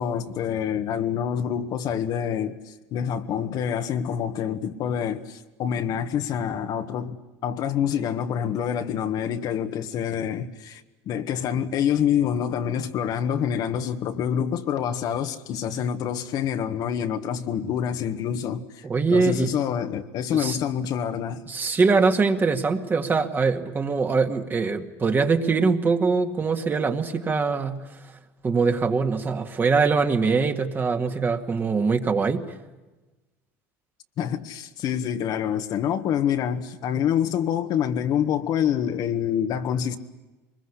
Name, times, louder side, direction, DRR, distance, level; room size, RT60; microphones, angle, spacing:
voice 1, 0.0-7.2 7.4-18.9 19.1-21.4 34.2-40.0, left 9 dB, 55° left, 1.7 m, -26 dB
voice 2, 18.8-19.5 20.3-20.6 21.5-27.9 28.4-32.5, right 4 dB, 25° right, 2.0 m, -23 dB
23.5 x 21.5 x 10.0 m
supercardioid pair, 105°, 8 cm